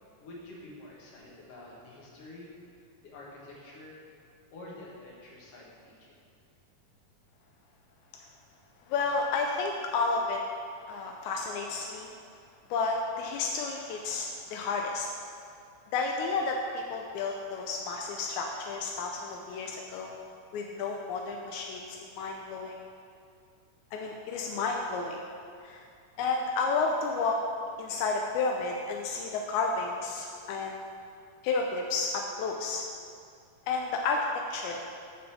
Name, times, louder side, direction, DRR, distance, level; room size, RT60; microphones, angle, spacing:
voice 1, 0.2-2.6 3.0-4.0 4.5-6.1, left 2 dB, 55° left, -4 dB, 2.1 m, -48 dB
voice 2, 8.9-10.4 10.9-12.1 12.7-15.1 15.9-20.2 20.5-22.8 23.9-25.2 25.6-25.8 26.2-27.4 27.8-30.8 31.4-32.8 33.7-34.8, left 4 dB, 85° left, 1 dB, 1.7 m, -31 dB
8.5 x 4.1 x 7.0 m, 2.3 s
omnidirectional pair, 3.9 m